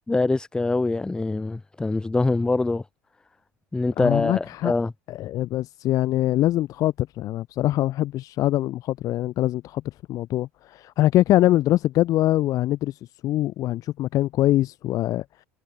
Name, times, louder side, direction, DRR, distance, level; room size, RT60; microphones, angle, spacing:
voice 1, 0.1-2.8 3.7-4.9, left 3 dB, 10° left, 0.4 m, -24 dB
voice 2, 4.0-4.7 5.1-15.2, left 14 dB, 55° left, 0.6 m, -23 dB
hypercardioid pair, 75°, 7 cm